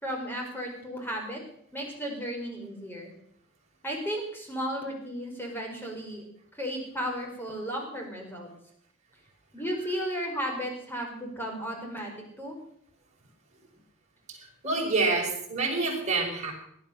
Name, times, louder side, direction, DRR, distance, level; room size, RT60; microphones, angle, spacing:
voice 1, 0.0-1.4 1.7-3.1 3.8-6.2 6.5-8.5 9.5-12.6, equal, 10° left, 1 dB, 4.6 m, -34 dB
voice 2, 14.6-16.5, right 3 dB, 30° right, -2 dB, 5.6 m, -27 dB
18.0 x 12.0 x 6.6 m, 0.68 s
head